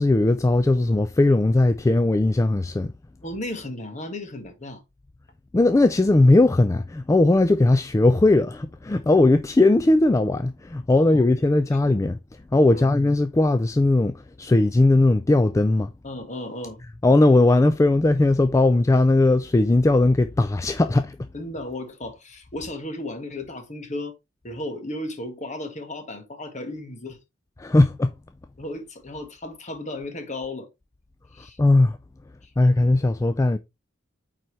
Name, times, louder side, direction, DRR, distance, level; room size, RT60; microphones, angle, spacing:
voice 1, 0.0-2.9 5.5-12.2 12.5-15.9 17.0-21.3 27.6-28.1 31.6-32.0 32.6-33.6, left 2 dB, 15° left, 0.3 m, -18 dB
voice 2, 3.2-4.8 11.0-11.2 12.7-12.9 16.0-16.8 21.3-24.1 24.4-27.2 28.6-30.7 31.3-31.6 32.4-32.5, left 1 dB, 40° left, 1.6 m, -34 dB
8.9 x 4.1 x 3.2 m
head